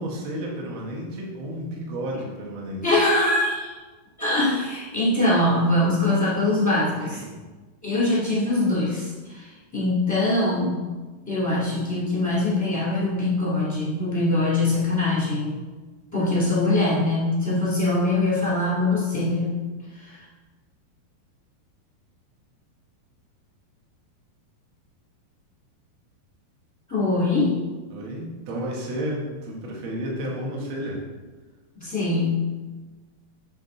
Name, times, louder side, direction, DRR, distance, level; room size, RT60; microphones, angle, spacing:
voice 1, 0.0-2.8 7.0-7.4 27.9-31.0, equal, 55° right, -2 dB, 1.5 m, -32 dB
voice 2, 2.8-3.7 4.2-7.2 7.8-10.9 11.3-15.6 16.1-19.6 19.9-20.2 26.9-27.6 31.7-32.5, left 2 dB, 5° left, -9 dB, 1.8 m, -23 dB
7.4 x 6.8 x 3.9 m, 1.3 s
omnidirectional pair, 4.6 m